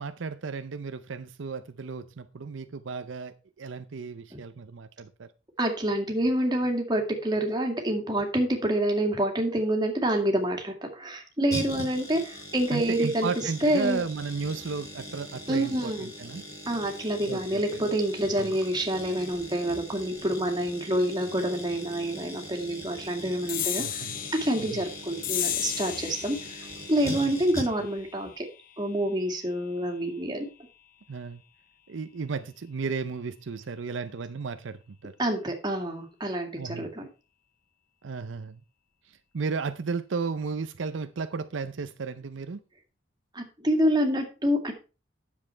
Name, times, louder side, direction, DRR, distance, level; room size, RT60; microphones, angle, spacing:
voice 1, 0.0-5.3 11.8-11.9 12.7-16.4 17.3-17.8 18.4-18.6 23.8-24.2 24.6-24.8 27.0-27.1 31.1-31.4 31.9-35.1 36.6-36.9 38.0-38.6 39.1-42.6, right 5 dB, 75° right, 0.6 m, -34 dB
voice 2, 5.6-14.0 15.5-16.1 16.7-24.1 24.4-28.5 28.8-30.5 35.2-37.0 43.3-44.7, right 1 dB, 25° right, 2.2 m, -27 dB
sound 1, 11.5-28.0 28.3-28.4, equal, 20° left, 5.3 m, -41 dB
sound 2, 23.5-30.3, left 11 dB, 45° left, 0.6 m, -36 dB
9.9 x 7.2 x 4.5 m
head